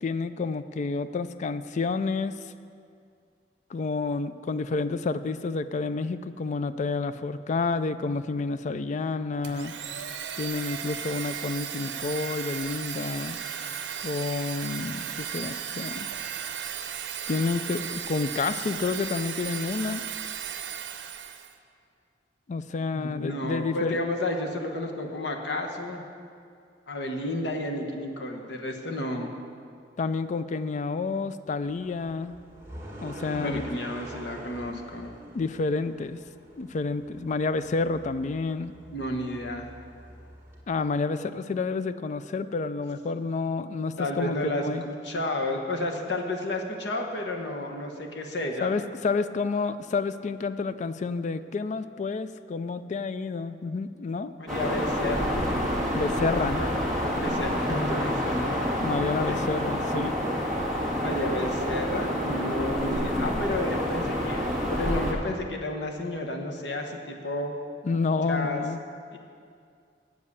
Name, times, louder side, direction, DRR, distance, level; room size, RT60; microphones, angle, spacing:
voice 1, 0.0-2.3 3.7-9.7 10.4-13.4 14.0-16.1 17.3-20.0 22.5-24.0 30.0-32.3 33.0-33.6 35.3-36.2 36.6-38.7 40.7-44.8 48.6-54.3 55.9-56.6 58.8-60.1 67.8-68.8, left 4 dB, 45° left, 13 dB, 0.3 m, -29 dB
Domestic sounds home sounds, 9.4-21.5, right 8 dB, 75° right, 0.7 m, -35 dB
voice 2, 22.9-26.0 26.9-29.3 33.4-35.1 38.9-39.7 44.0-48.7 54.4-55.4 56.0-56.1 56.5-56.9 57.2-58.6 59.3-59.4 61.0-67.5 68.2-68.6 69.1-69.2, left 1 dB, 75° left, 2 dB, 1.2 m, -31 dB
sound 1, 31.6-40.6, equal, 15° right, 1.9 m, -45 dB
sound 2, 54.5-65.1, equal, ahead, 1.7 m, -28 dB
8.0 x 7.5 x 8.2 m, 2.3 s
head